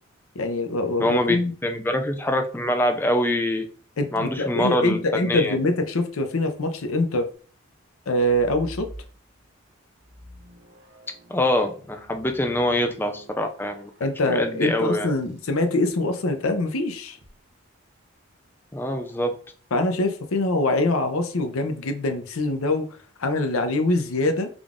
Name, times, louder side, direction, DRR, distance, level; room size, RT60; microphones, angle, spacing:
voice 1, 0.3-1.5 4.0-7.3 8.1-8.9 14.0-17.2 19.7-22.8 23.2-24.5, left 2 dB, 85° left, 7 dB, 0.6 m, -24 dB
voice 2, 1.0-3.7 4.1-5.6 11.3-15.1 18.7-19.3, left 1 dB, 10° left, 5 dB, 0.3 m, -24 dB
sound 1, 8.1-9.5 10.0-15.5 17.0-17.3, equal, 55° right, 0.8 m, -47 dB
3.7 x 2.4 x 3.5 m, 0.41 s
head